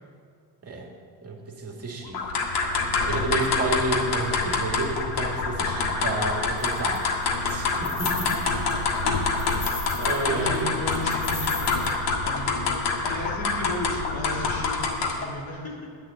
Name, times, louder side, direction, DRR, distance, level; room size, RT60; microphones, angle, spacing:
voice 1, 1.2-2.2 3.1-7.0 7.4-8.3 10.0-10.7, right 2 dB, 35° right, 0 dB, 2.2 m, -30 dB
sound 1, 2.1-15.3, left 4 dB, 75° left, 1.7 m, -26 dB
sound 2, 6.6-7.0 7.5-8.7 9.1-10.3 10.5-10.6 10.9-11.9, left 3 dB, 40° left, 1.9 m, -37 dB
voice 2, 10.2-15.9, left 2 dB, 55° left, -1 dB, 2.7 m, -35 dB
11.0 x 6.7 x 8.5 m, 2.2 s
cardioid pair, 130°, 43 cm